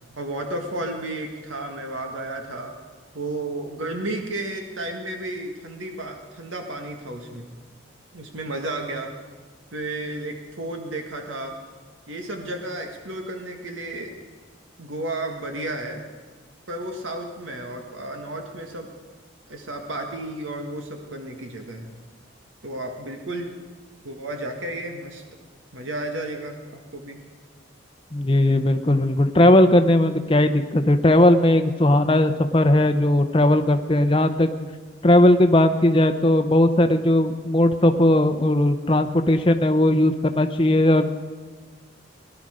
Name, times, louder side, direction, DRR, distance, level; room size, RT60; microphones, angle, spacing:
voice 1, 0.2-2.8 3.1-7.5 8.1-9.1 9.7-11.5 12.1-14.1 14.8-16.0 16.7-18.9 19.5-21.9 22.6-23.5 24.0-25.2 25.7-27.2, right 1 dB, 85° right, 3 dB, 1.7 m, -32 dB
voice 2, 28.1-34.5 35.0-41.1, left 1 dB, 25° left, 8 dB, 0.7 m, -18 dB
19.0 x 11.5 x 5.0 m, 1.4 s
head